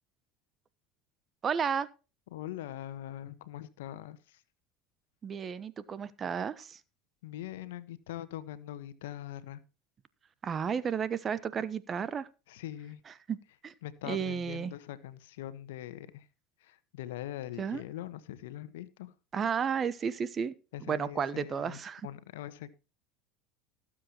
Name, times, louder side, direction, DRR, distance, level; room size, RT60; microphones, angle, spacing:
voice 1, 1.4-1.9 5.2-6.8 10.4-12.3 13.3-13.4 13.6-13.7 14.0-14.7 17.6-17.8 19.3-20.5 20.8-22.1, right 7 dB, 35° right, 17 dB, 1.0 m, -32 dB
voice 2, 2.3-4.4 7.2-9.6 12.5-13.0 13.8-16.3 16.6-19.1 20.7-22.7, left 12 dB, 80° left, 14 dB, 1.2 m, -42 dB
18.5 x 7.6 x 3.0 m, 0.32 s
hypercardioid pair, 95°, 0 cm